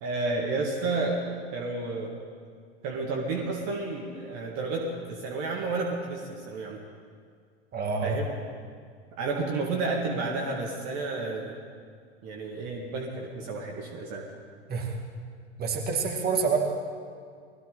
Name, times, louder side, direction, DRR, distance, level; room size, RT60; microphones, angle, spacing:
voice 1, 0.0-2.2 2.8-6.8 8.0-8.3 9.1-11.6 12.2-14.2, right 3 dB, 50° right, 0 dB, 2.0 m, -31 dB
voice 2, 7.7-8.1 14.7-15.0 15.6-16.6, right 5 dB, 30° right, 1 dB, 2.5 m, -27 dB
20.5 x 15.0 x 4.0 m, 2.1 s
hypercardioid pair, 90°, 34 cm